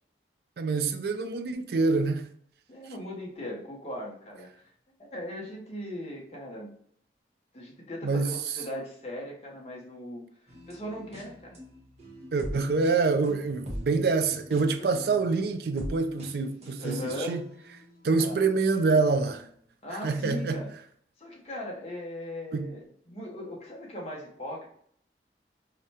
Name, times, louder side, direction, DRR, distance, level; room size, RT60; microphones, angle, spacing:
voice 1, 0.6-2.3 8.0-8.3 12.3-17.4 18.0-19.5 20.0-20.6 22.5-22.7, right 4 dB, 60° right, 0.3 m, -26 dB
voice 2, 2.7-4.7 5.0-6.7 7.5-11.6 14.6-14.9 16.8-17.4 18.2-18.4 19.8-20.7 21.2-24.7, left 1 dB, 35° left, 0.8 m, -39 dB
sound 1, 10.5-18.2 18.7-19.3, equal, 35° right, 0.8 m, -43 dB
4.7 x 2.2 x 2.7 m
head